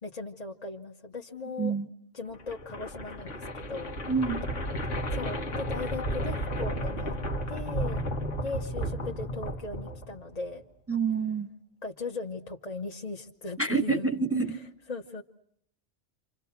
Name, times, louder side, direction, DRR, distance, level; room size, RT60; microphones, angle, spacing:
voice 1, 0.0-1.8 2.1-3.9 5.1-7.2 7.5-8.0 8.4-10.6 11.8-14.1 14.5-14.6 14.9-15.2, left 3 dB, 35° left, 2 dB, 1.2 m, -38 dB
sound 1, 2.3-10.4, equal, 90° left, 1.9 m, -33 dB
voice 2, 4.1-4.4 10.9-11.5 13.6-14.6, right 4 dB, 15° right, 9 dB, 0.9 m, -27 dB
29.5 x 27.0 x 5.8 m, 0.69 s
omnidirectional pair, 1.2 m